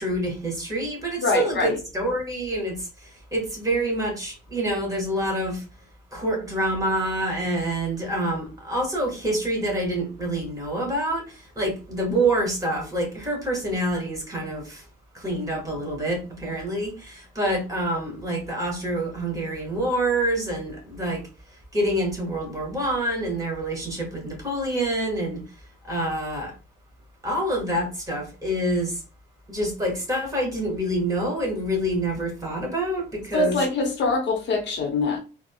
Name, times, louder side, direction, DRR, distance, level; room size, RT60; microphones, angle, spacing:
voice 1, 0.0-5.6 6.1-14.8 15.1-21.2 21.7-25.4 25.8-26.5 27.2-29.0 29.5-33.6, right 1 dB, 15° right, 1.6 m, -27 dB
voice 2, 1.2-1.8 33.3-35.2, left 3 dB, 60° left, 0.8 m, -24 dB
3.9 x 2.0 x 2.3 m
cardioid pair, 90°, 20 cm